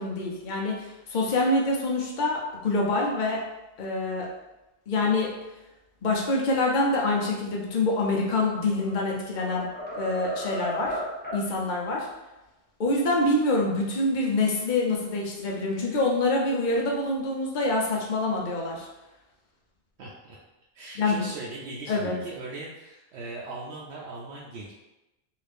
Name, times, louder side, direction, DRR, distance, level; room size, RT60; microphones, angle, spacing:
voice 1, 0.0-3.4 3.8-4.3 4.9-5.3 6.0-9.7 9.9-11.0 11.3-12.1 12.8-18.9 21.0-21.2 21.9-22.2, left 2 dB, 50° left, -2 dB, 0.7 m, -26 dB
sound 1, 8.6-9.0 9.4-11.5, left 1 dB, 10° left, 0.7 m, -35 dB
voice 2, 20.0-20.4 20.7-24.7, right 3 dB, 85° right, -5 dB, 0.9 m, -39 dB
2.8 x 2.5 x 3.3 m, 0.98 s
omnidirectional pair, 1.1 m